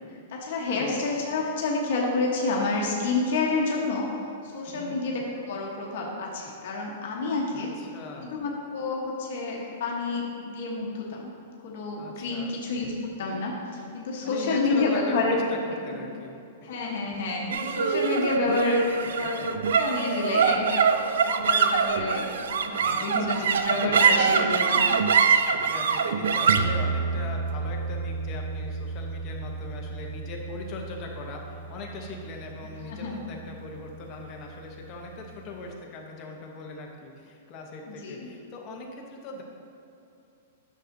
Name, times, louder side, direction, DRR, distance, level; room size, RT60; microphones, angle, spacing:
voice 1, 0.1-4.1 4.4-7.7 8.3-11.3 11.6-15.4 15.8-16.0 16.6-20.9 21.2-22.3 22.6-24.9 32.9-33.2 37.9-38.3, left 3 dB, 50° left, -2 dB, 1.0 m, -29 dB
voice 2, 4.6-5.0 7.5-8.3 12.0-12.5 14.2-16.7 19.2-19.5 22.8-23.1 23.4-23.8 25.5-39.4, left 3 dB, 25° left, 0 dB, 0.8 m, -41 dB
sound 1, 17.5-34.1, right 6 dB, 80° right, 0.4 m, -26 dB
9.6 x 6.3 x 2.6 m, 2.7 s
supercardioid pair, 175°, 0 cm